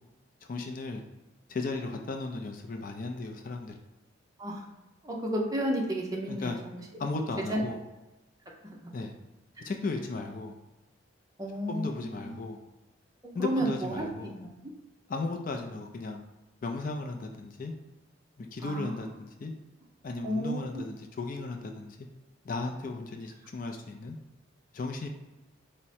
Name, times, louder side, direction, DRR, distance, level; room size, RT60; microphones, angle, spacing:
voice 1, 0.4-1.0 1.5-3.7 6.3-6.6 7.0-7.8 8.9-9.1 9.6-10.6 11.7-12.6 13.3-14.4 15.1-16.2 16.6-17.7 18.4-19.5 20.0-22.0 22.4-24.2 24.7-25.1, left 3 dB, 45° left, 3 dB, 0.4 m, -35 dB
voice 2, 5.0-6.8 7.5-7.6 8.8-8.9 9.6-9.7 11.4-12.3 13.4-14.5 18.6-19.0 20.2-20.7, right 1 dB, 20° right, -1 dB, 0.6 m, -32 dB
4.6 x 2.1 x 4.2 m, 1.0 s
head